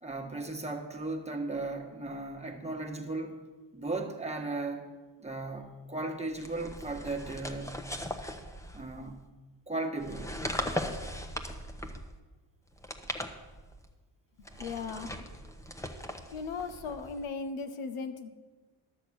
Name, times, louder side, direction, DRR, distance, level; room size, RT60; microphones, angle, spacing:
voice 1, 0.0-3.3 3.7-4.9 5.2-7.9 8.7-9.3 9.7-10.5 14.5-14.6, right 2 dB, 15° right, 1 dB, 1.4 m, -36 dB
sound 1, 6.4-9.1 10.0-12.2 12.7-13.9 14.4-17.3, left 1 dB, 5° left, 0.9 m, -39 dB
voice 2, 14.6-15.2 16.3-18.3, left 4 dB, 85° left, 8 dB, 1.0 m, -37 dB
12.0 x 7.0 x 6.1 m, 1.3 s
cardioid pair, 85°, 49 cm